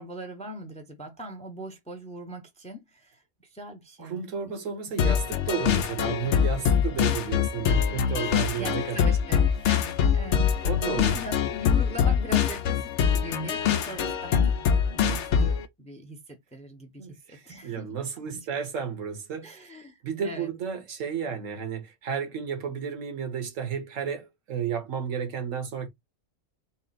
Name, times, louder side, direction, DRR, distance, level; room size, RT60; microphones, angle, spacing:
voice 1, 0.0-4.5 7.7-7.8 8.2-17.9 18.2-18.5 19.4-20.5, equal, 5° left, 0.6 m, -41 dB
voice 2, 4.0-9.1 10.6-11.2 17.0-19.7 20.0-25.9, right 7 dB, 75° right, 1.3 m, -32 dB
sound 1, 5.0-15.6, left 7 dB, 65° left, 0.9 m, -24 dB
4.2 x 2.0 x 3.9 m
omnidirectional pair, 1.4 m